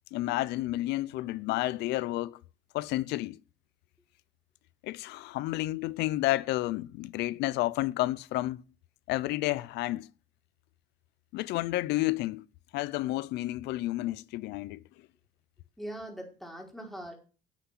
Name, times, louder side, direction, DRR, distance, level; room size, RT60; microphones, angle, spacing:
voice 1, 0.1-2.4 2.7-3.4 4.8-8.6 9.1-10.1 11.3-12.5 12.7-14.8, left 17 dB, 90° left, 0.7 m, -31 dB
voice 2, 15.8-17.1, right 1 dB, ahead, 5.1 m, -41 dB
10.0 x 8.3 x 7.9 m
cardioid pair, 110°, 17 cm